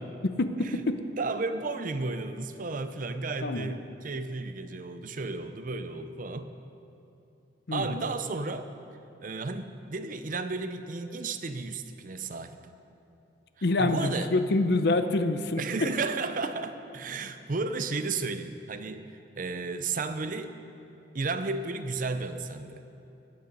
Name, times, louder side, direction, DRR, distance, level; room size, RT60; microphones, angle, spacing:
voice 1, 0.2-1.0 3.4-3.8 7.7-8.1 13.6-15.9, left 2 dB, 55° left, 9 dB, 0.7 m, -26 dB
voice 2, 1.2-6.5 7.7-8.7 9.2-12.6 13.8-14.3 15.6-19.1 19.4-20.5 21.1-22.8, right 3 dB, 45° right, 9 dB, 0.6 m, -33 dB
15.0 x 9.6 x 5.3 m, 2.8 s
head